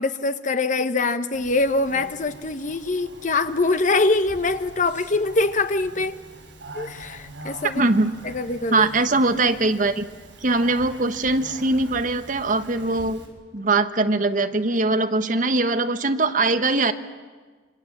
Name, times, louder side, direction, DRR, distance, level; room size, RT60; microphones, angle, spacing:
voice 1, 0.0-6.2 6.7-7.8 8.2-8.9, left 3 dB, 45° left, 10 dB, 1.1 m, -23 dB
Speech, 1.3-13.3, right 2 dB, 75° right, 6.4 m, -43 dB
voice 2, 7.7-8.1 8.7-10.0 10.4-13.2 13.5-16.9, right 2 dB, 45° right, 9 dB, 1.2 m, -21 dB
27.0 x 25.0 x 7.4 m, 1.4 s
head